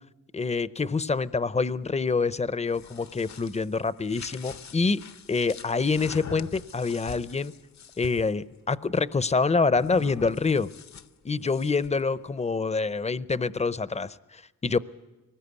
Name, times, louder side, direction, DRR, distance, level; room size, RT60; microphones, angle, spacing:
voice 1, 0.3-7.5 8.0-10.7 11.2-14.8, left 4 dB, 20° left, 17 dB, 0.7 m, -26 dB
sound 1, 2.5-8.3 9.7-12.0, left 7 dB, 55° left, 0.8 m, -44 dB
23.0 x 20.0 x 8.3 m, 1.1 s
cardioid pair, 80°, 34 cm